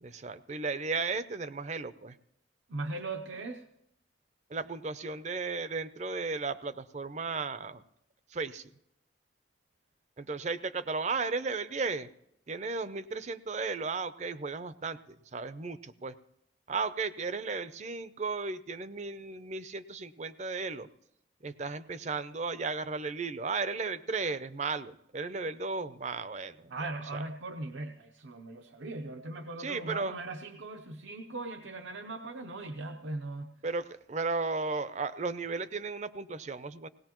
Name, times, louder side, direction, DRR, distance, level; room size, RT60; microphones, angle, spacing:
voice 1, 0.0-2.2 4.5-7.8 8.3-8.7 10.2-12.1 12.5-16.1 16.7-20.9 21.4-26.7 27.1-27.2 29.6-30.1 33.6-36.9, right 4 dB, 40° right, 13 dB, 0.5 m, -35 dB
voice 2, 2.7-3.6 26.7-33.5, right 2 dB, 80° right, 4 dB, 0.7 m, -39 dB
18.5 x 17.5 x 3.0 m, 0.77 s
head